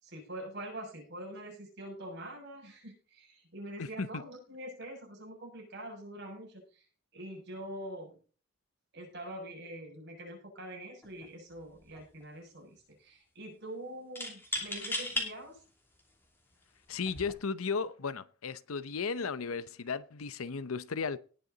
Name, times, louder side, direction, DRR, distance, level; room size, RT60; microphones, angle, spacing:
voice 1, 0.0-6.8 7.1-8.2 8.9-15.6, right 1 dB, 55° right, 6.5 m, -44 dB
voice 2, 3.8-4.2 16.9-21.2, left 5 dB, 85° left, 0.7 m, -35 dB
sound 1, 11.0-11.3 11.6-12.2 14.2-15.3 16.0-16.1 17.0-17.3, left 1 dB, 10° left, 2.7 m, -36 dB
18.5 x 6.8 x 3.9 m
head